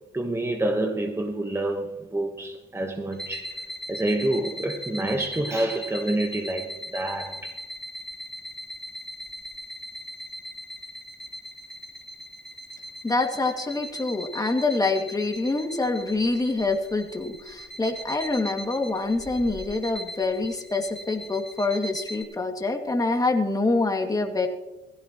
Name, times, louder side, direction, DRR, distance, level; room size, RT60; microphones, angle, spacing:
voice 1, 0.1-3.6 3.9-7.5, right 1 dB, 15° right, 1.3 m, -28 dB
sound 1, 3.1-22.2, equal, 5° left, 2.2 m, -39 dB
voice 2, 13.0-24.5, left 3 dB, 20° left, 2.3 m, -26 dB
16.5 x 15.5 x 3.1 m
cardioid pair, 90°, 20 cm